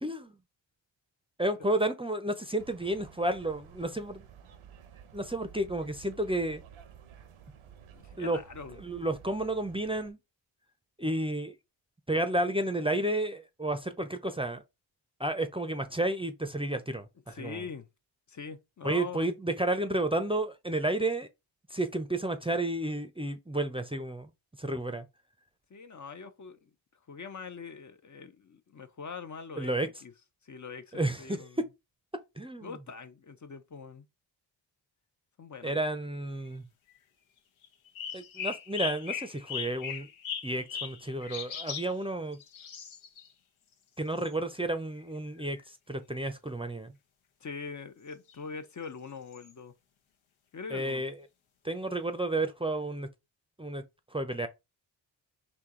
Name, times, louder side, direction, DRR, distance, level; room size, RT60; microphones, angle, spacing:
voice 1, 0.0-0.4 1.4-4.2 5.1-6.6 8.2-8.4 8.8-10.2 11.0-11.5 12.1-14.6 15.2-17.6 18.8-21.3 21.7-24.3 24.6-25.1 29.6-29.9 30.9-31.4 32.4-32.7 35.6-36.6 38.1-40.1 40.4-42.4 44.0-45.6 45.9-46.9 50.7-51.1 51.6-53.1 53.6-53.8 54.1-54.5, right 1 dB, 10° right, 0.6 m, -31 dB
sound 1, 2.6-10.1, right 8 dB, 85° right, 0.8 m, -53 dB
voice 2, 7.9-8.8 17.3-17.9 18.3-19.3 25.7-26.7 27.1-30.1 30.4-31.6 32.6-34.1 35.4-35.8 47.4-49.7 50.5-51.0, left 5 dB, 40° left, 0.6 m, -43 dB
sound 2, 37.6-41.9 42.3-43.3 44.2-44.3 45.0-45.1 45.4-45.6 48.3-48.4 49.3-49.5, left 8 dB, 75° left, 0.9 m, -38 dB
4.4 x 2.7 x 3.7 m
cardioid pair, 60°, 48 cm